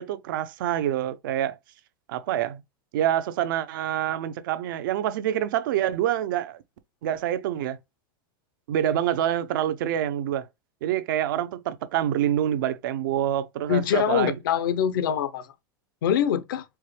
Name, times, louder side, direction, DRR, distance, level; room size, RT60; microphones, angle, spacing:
voice 1, 0.0-1.6 2.1-2.6 2.9-6.6 7.0-7.8 8.7-10.5 10.8-14.3, right 11 dB, 75° right, 0.6 m, -26 dB
voice 2, 13.7-15.5 16.0-16.6, left 9 dB, 80° left, 0.7 m, -24 dB
4.5 x 2.2 x 3.2 m
supercardioid pair, 135°, 11 cm